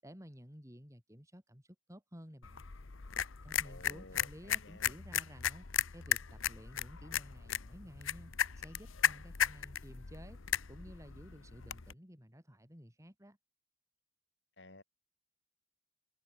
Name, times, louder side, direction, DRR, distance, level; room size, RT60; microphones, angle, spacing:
voice 1, 0.0-2.6 3.4-10.4 10.7-13.4, equal, 15° right, 7.4 m, -54 dB
sound 1, 2.4-11.9, left 9 dB, 85° left, 1.0 m, -36 dB
voice 2, 3.6-5.0 14.6-14.8, left 2 dB, 60° left, 5.4 m, -54 dB
head